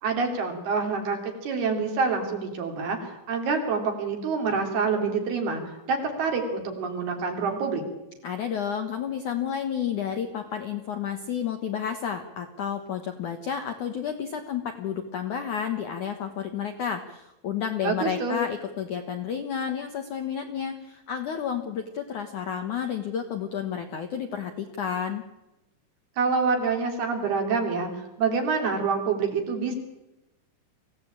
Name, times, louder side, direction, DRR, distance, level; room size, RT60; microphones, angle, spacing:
voice 1, 0.0-5.6 5.9-7.8 17.8-18.4 26.2-27.9 28.2-29.8, right 4 dB, 60° right, 3 dB, 5.0 m, -26 dB
voice 2, 8.2-25.2, left 8 dB, 65° left, 6 dB, 2.0 m, -31 dB
24.5 x 17.0 x 8.8 m, 0.96 s
omnidirectional pair, 5.4 m